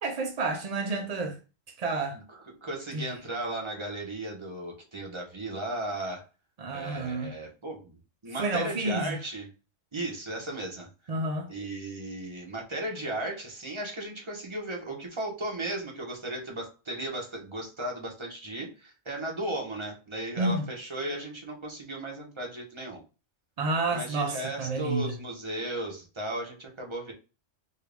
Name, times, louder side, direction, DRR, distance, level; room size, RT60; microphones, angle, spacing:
voice 1, 0.0-1.4 1.8-2.2 2.9-3.0 6.6-7.3 8.4-9.2 11.1-11.5 20.4-20.6 23.6-25.1, right 3 dB, 65° right, 0.4 m, -30 dB
voice 2, 2.3-6.3 6.7-9.5 9.9-10.9 11.5-23.0 23.9-27.1, right 1 dB, 25° right, 1.0 m, -36 dB
4.4 x 2.4 x 3.4 m
omnidirectional pair, 1.3 m